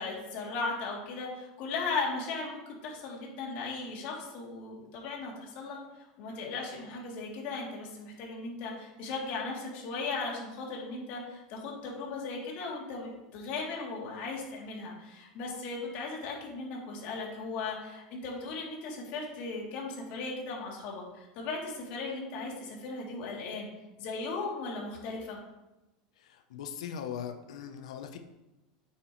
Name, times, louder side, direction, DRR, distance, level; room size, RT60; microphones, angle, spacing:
voice 1, 0.0-23.7 24.0-25.4, left 3 dB, 55° left, -2 dB, 3.0 m, -37 dB
voice 2, 26.2-28.2, left 8 dB, 90° left, 7 dB, 0.8 m, -40 dB
8.9 x 7.4 x 3.2 m, 1.0 s
supercardioid pair, 125°, 3 cm